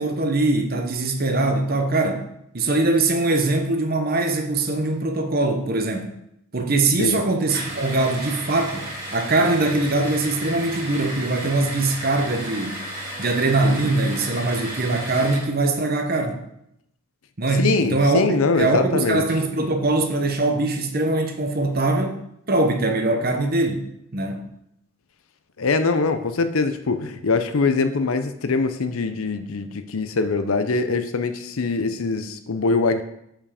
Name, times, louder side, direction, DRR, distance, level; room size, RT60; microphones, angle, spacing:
voice 1, 0.0-6.1 6.5-12.9 13.2-16.4 17.4-24.5, right 2 dB, 45° right, 4 dB, 0.9 m, -22 dB
sound 1, 7.5-15.5, right 1 dB, 15° right, 2.5 m, -34 dB
voice 2, 17.6-19.2 25.6-33.0, left 3 dB, 75° left, 9 dB, 0.6 m, -23 dB
7.1 x 5.7 x 5.0 m, 0.78 s
head